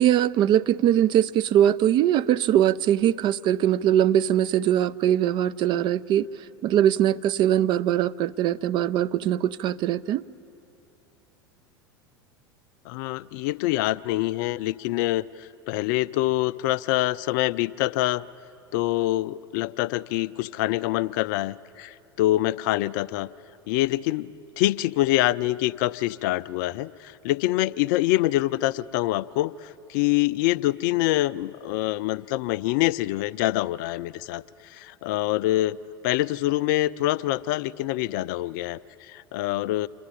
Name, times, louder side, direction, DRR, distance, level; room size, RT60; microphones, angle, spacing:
voice 1, 0.0-6.3 6.6-10.2, right 11 dB, 35° right, 15 dB, 0.4 m, -21 dB
voice 2, 12.9-18.2 18.7-23.3 23.7-35.8 36.0-39.9, left 16 dB, 50° left, 17 dB, 0.4 m, -25 dB
27.5 x 11.5 x 9.0 m, 2.7 s
figure-of-eight pair, 85°, 13 cm